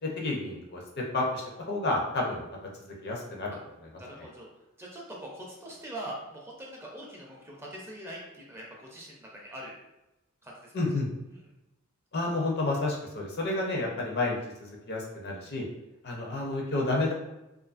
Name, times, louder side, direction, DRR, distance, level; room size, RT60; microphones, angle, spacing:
voice 1, 0.0-0.8 1.1-3.5 4.2-4.3 10.7-11.1 12.1-15.7 16.0-17.1, left 2 dB, 50° left, -1 dB, 0.6 m, -30 dB
voice 2, 4.0-4.5 4.8-9.7 10.4-10.9 11.3-11.4 15.3-15.5, right 1 dB, 10° right, -3 dB, 0.4 m, -43 dB
2.5 x 2.4 x 2.4 m, 0.94 s
head